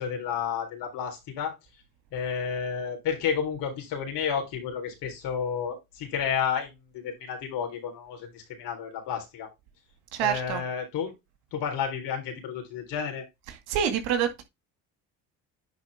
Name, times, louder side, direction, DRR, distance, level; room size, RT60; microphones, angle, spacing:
voice 1, 0.0-1.5 2.1-9.5 10.2-11.1 11.5-13.3, left 7 dB, 75° left, 4.2 m, -31 dB
voice 2, 10.1-10.6 13.5-14.4, right 9 dB, 80° right, 2.2 m, -27 dB
10.0 x 4.4 x 3.6 m
supercardioid pair, 70°, 41 cm